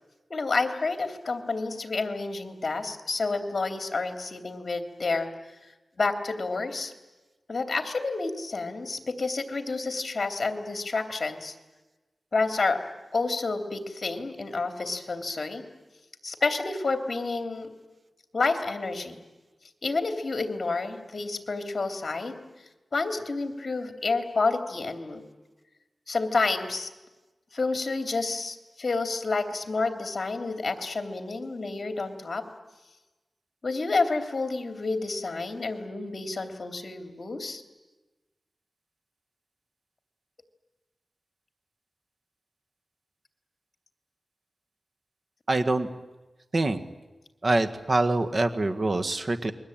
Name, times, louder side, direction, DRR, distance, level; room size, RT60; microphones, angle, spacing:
voice 1, 0.3-5.3 6.0-6.9 7.5-11.5 12.3-12.8 13.1-15.6 16.2-17.7 18.3-19.2 19.8-22.4 22.9-25.2 26.1-26.9 27.5-32.4 33.6-37.6, left 3 dB, 50° left, 7 dB, 3.1 m, -29 dB
voice 2, 45.5-45.9 46.5-46.8 47.4-49.5, right 2 dB, 45° right, 8 dB, 1.7 m, -25 dB
29.0 x 22.0 x 9.0 m, 1.1 s
wide cardioid pair, 85°, 0 cm